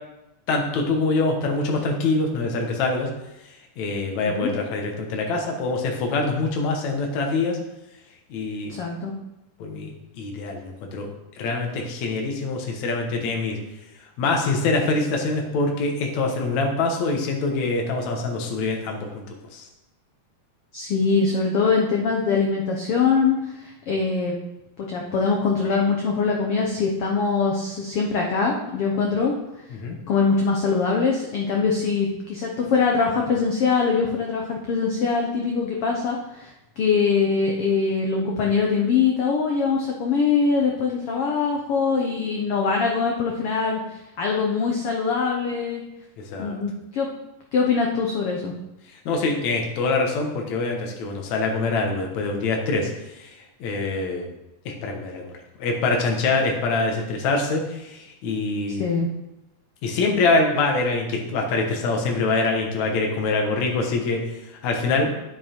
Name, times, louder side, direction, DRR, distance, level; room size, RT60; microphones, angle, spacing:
voice 1, 0.5-3.1 3.8-7.6 8.3-8.8 9.6-11.1 11.4-13.6 14.2-19.7 29.7-30.0 46.2-46.6 48.9-54.3 54.7-55.3 55.6-58.8 59.8-65.1, left 3 dB, 60° left, 1 dB, 2.5 m, -24 dB
voice 2, 4.2-4.5 8.7-9.1 20.7-24.3 24.8-29.3 30.1-36.5 36.8-43.8 44.2-45.8 46.4-47.1 47.5-48.5 58.8-59.1, left 5 dB, 90° left, 0 dB, 1.2 m, -23 dB
9.6 x 7.2 x 4.4 m, 0.94 s
omnidirectional pair, 3.9 m